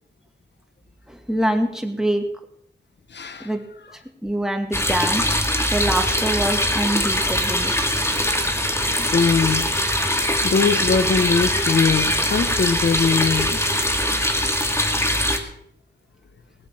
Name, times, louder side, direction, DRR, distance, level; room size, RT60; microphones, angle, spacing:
voice 1, 1.1-2.2 3.4-3.6 3.9-5.3 5.7-7.7 9.0-9.1, right 1 dB, 5° right, 4 dB, 2.2 m, -25 dB
voice 2, 3.1-3.5 9.1-9.6 10.4-13.8, left 5 dB, 75° left, 11 dB, 1.2 m, -21 dB
sound 1, 4.7-15.4, left 1 dB, 15° left, 2.2 m, -22 dB
20.0 x 7.8 x 7.8 m, 0.73 s
wide cardioid pair, 105°, 18 cm